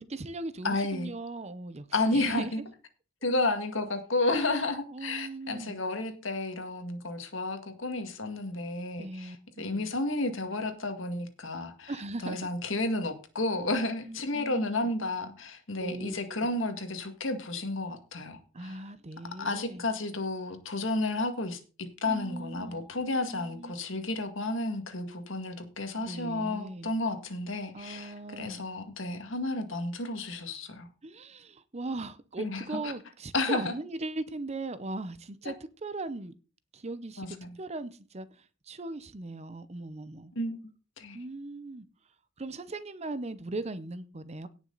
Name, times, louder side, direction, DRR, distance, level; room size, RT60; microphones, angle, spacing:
voice 1, 0.1-2.5 4.2-4.6 4.9-5.8 9.0-9.9 11.9-12.4 14.1-14.9 15.8-16.5 18.5-19.8 22.0-22.8 23.3-23.7 26.0-26.9 27.7-28.7 31.0-35.5 35.8-36.3 36.7-37.3 37.6-40.3 41.1-41.9 42.4-44.5, right 2 dB, 30° right, 0.7 m, -39 dB
voice 2, 0.6-1.1 1.9-2.6 3.2-11.9 12.2-18.8 19.4-30.9 32.4-32.9 33.3-33.7 37.2-37.5 40.4-40.6 41.0-41.2, left 2 dB, 65° left, 2.1 m, -32 dB
17.5 x 6.2 x 4.0 m
head